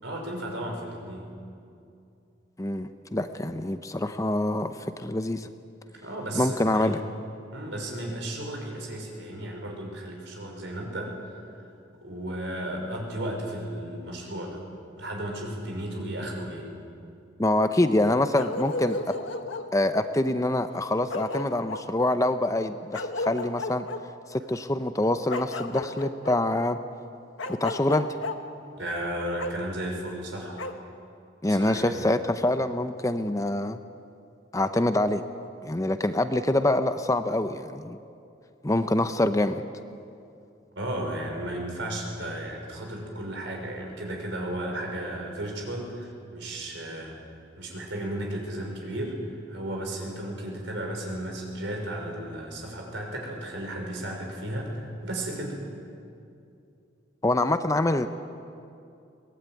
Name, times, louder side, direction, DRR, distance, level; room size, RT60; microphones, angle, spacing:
voice 1, 0.0-1.4 5.9-7.0 7.5-11.7 12.0-14.6 15.0-16.7 28.8-30.7 31.5-32.0 40.8-47.1 47.6-55.6, right 1 dB, 65° right, 1 dB, 5.8 m, -34 dB
voice 2, 2.6-5.5 6.3-7.0 17.4-19.1 19.7-23.9 24.3-26.8 27.5-28.1 31.4-33.8 34.5-35.2 35.6-38.0 38.6-39.6 57.2-58.1, left 1 dB, 15° left, 9 dB, 0.7 m, -25 dB
Bark, 18.3-19.7 20.7-20.8 21.1-21.9 22.9-24.0 25.3-26.4 27.4-28.4 29.4-29.5 30.6-30.7, left 3 dB, 80° left, 1.5 m, -33 dB
23.0 x 19.5 x 9.2 m, 2.5 s
head